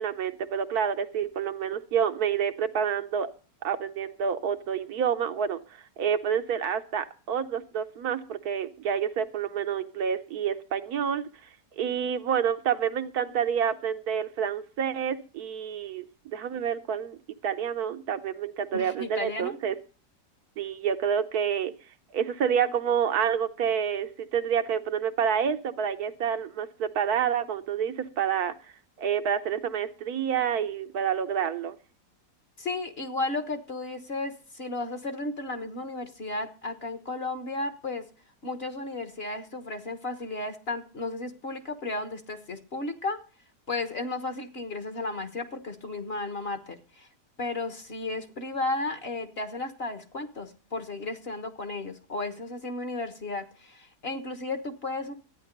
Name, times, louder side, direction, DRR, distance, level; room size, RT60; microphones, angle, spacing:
voice 1, 0.0-3.3 3.6-11.2 11.8-17.2 17.4-19.8 20.6-21.7 22.1-28.5 29.0-31.7, right 8 dB, 70° right, 8 dB, 1.2 m, -28 dB
voice 2, 18.7-19.6 32.6-38.0 38.4-43.2 43.7-47.1 47.4-55.1, left 2 dB, 40° left, 8 dB, 1.3 m, -34 dB
13.0 x 9.3 x 5.2 m, 0.37 s
omnidirectional pair, 1.8 m